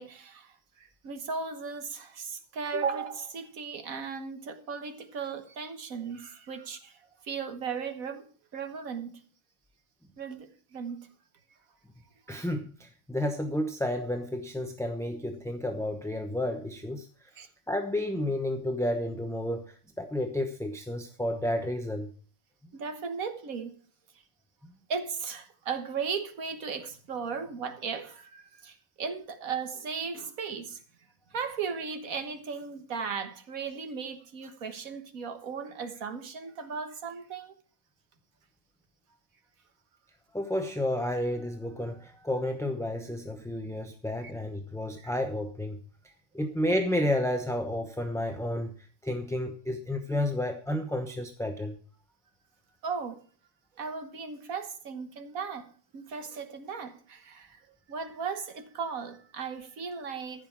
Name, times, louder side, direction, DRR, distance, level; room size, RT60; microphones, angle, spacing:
voice 1, 0.0-8.3 8.5-9.2 10.2-11.1 17.4-17.5 22.7-23.7 24.1-24.2 24.9-30.8 31.3-37.5 44.2-44.3 45.0-45.1 52.8-53.2 53.8-60.5, right 5 dB, 90° right, 1.8 m, -36 dB
voice 2, 12.3-17.1 17.7-22.1 40.3-45.8 46.3-48.8 49.0-51.8, left 1 dB, 5° left, 0.7 m, -31 dB
14.0 x 6.0 x 7.3 m
omnidirectional pair, 1.4 m